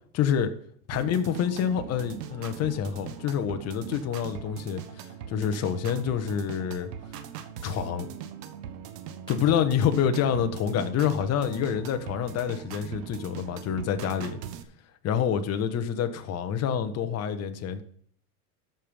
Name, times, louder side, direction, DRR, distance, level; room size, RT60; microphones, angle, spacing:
voice 1, 0.1-0.5 0.9-6.9 7.6-8.1 9.3-14.4 15.0-17.8, left 8 dB, 30° left, 1.2 m, -27 dB
sound 1, 0.9-14.6, right 9 dB, 90° right, 1.3 m, -41 dB
13.5 x 5.2 x 5.5 m
supercardioid pair, 140°, 47 cm